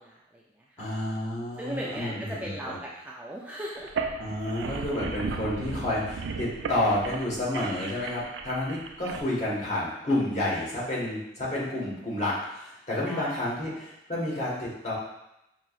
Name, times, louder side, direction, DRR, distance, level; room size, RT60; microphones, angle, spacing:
voice 1, 0.0-0.8 1.6-3.9 13.0-13.8, right 1 dB, 10° right, -4 dB, 0.3 m, -38 dB
voice 2, 0.8-2.8 4.2-14.9, left 1 dB, 40° left, -7 dB, 1.4 m, -30 dB
sound 1, 3.8-9.2, right 4 dB, 85° right, 0.4 m, -36 dB
5.7 x 2.9 x 2.4 m, 0.87 s
head